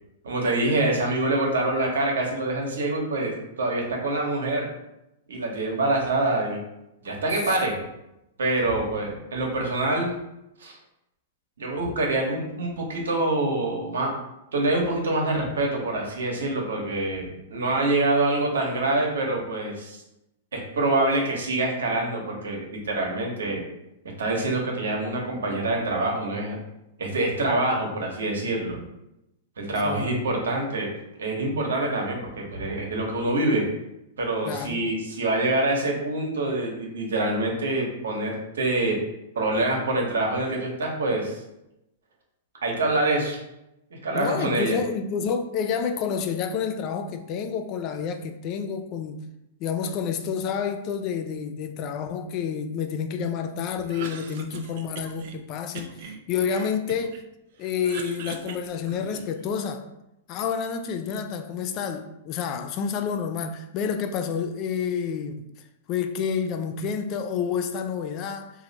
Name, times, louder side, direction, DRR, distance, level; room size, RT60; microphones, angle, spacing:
voice 1, 0.2-4.7 5.3-6.6 7.0-7.7 8.4-10.2 10.6-10.8 11.6-14.1 14.5-20.0 20.5-23.6 24.2-26.6 27.0-28.8 29.6-30.9 31.2-33.6 34.2-39.0 39.4-41.4 42.6-43.4 44.0-44.8, right 2 dB, 85° right, 0.9 m, -25 dB
voice 2, 29.8-30.2 34.5-34.9 44.1-49.2 49.6-56.0 56.3-57.2 57.6-59.8 60.3-65.5 65.9-68.5, left 7 dB, 40° left, 0.3 m, -29 dB
Cough, 53.8-55.4 55.8-57.2 57.6-59.5, right 6 dB, 60° right, 0.4 m, -41 dB
3.0 x 2.4 x 4.0 m
hypercardioid pair, 130°, 0 cm